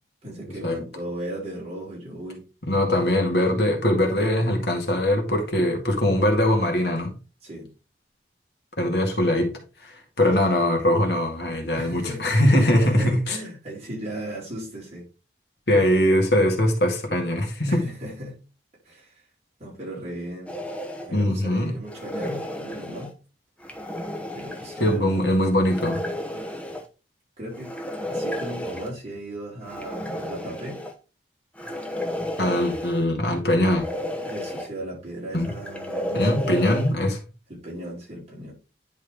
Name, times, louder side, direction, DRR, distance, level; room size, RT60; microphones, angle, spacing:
voice 1, 0.2-2.4 4.1-4.5 7.4-7.7 11.7-15.1 15.7-15.9 17.7-18.4 18.8-19.2 19.6-20.5 21.0-23.1 24.3-25.4 27.4-27.8 28.1-30.8 34.2-36.5 37.5-38.5, right 1 dB, 35° right, 4.7 m, -36 dB
voice 2, 2.6-7.1 8.8-9.5 9.8-13.4 15.7-17.9 21.1-21.7 24.8-26.0 32.4-33.9 35.3-35.5 36.1-37.2, left 1 dB, 70° left, 2.1 m, -21 dB
sound 1, 20.5-21.1 21.9-23.1 23.6-25.0 25.7-26.9 27.5-28.9 29.6-30.9 31.6-33.0 33.6-34.7 35.4-36.9, left 1 dB, 5° left, 1.0 m, -32 dB
10.5 x 4.6 x 3.5 m
head